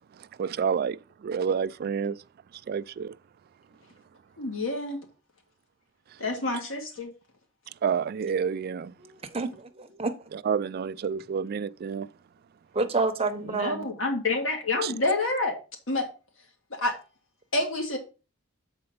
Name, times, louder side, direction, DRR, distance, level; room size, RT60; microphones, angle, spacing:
voice 1, 0.1-2.2 2.5-3.2 6.1-6.2 7.7-8.9 10.3-12.1 14.8-14.9, right 6 dB, 50° right, 0.3 m, -29 dB
voice 2, 4.4-5.0 6.2-7.1 13.4-15.5 15.9-16.1 16.7-17.0 17.5-18.0, left 2 dB, 75° left, 2.0 m, -28 dB
voice 3, 9.0-9.5 9.8-10.1 12.7-13.9, right 3 dB, 30° right, 0.9 m, -28 dB
7.7 x 4.4 x 5.5 m
head